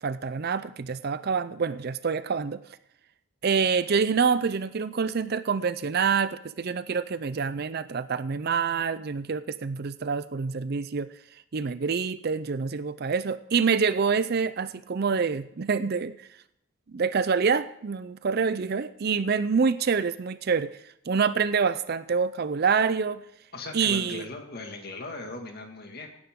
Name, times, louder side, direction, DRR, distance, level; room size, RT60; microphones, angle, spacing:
voice 1, 0.0-2.6 3.4-11.1 11.5-16.3 16.9-20.7 21.1-23.2 23.7-24.3, right 5 dB, 45° right, 15 dB, 0.4 m, -26 dB
voice 2, 23.5-26.1, left 2 dB, 45° left, 3 dB, 1.9 m, -38 dB
17.5 x 9.7 x 3.7 m, 0.76 s
head